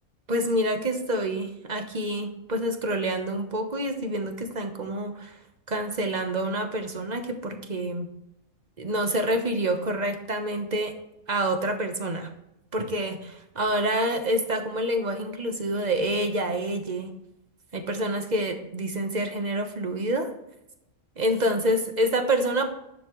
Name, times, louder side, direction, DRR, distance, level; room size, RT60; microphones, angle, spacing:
voice 1, 0.3-5.4 5.7-8.1 8.8-10.9 11.3-12.3 12.7-17.1 17.7-20.3 21.2-22.7, right 1 dB, 35° right, 5 dB, 1.2 m, -27 dB
11.0 x 7.3 x 3.1 m, 0.84 s
omnidirectional pair, 1.4 m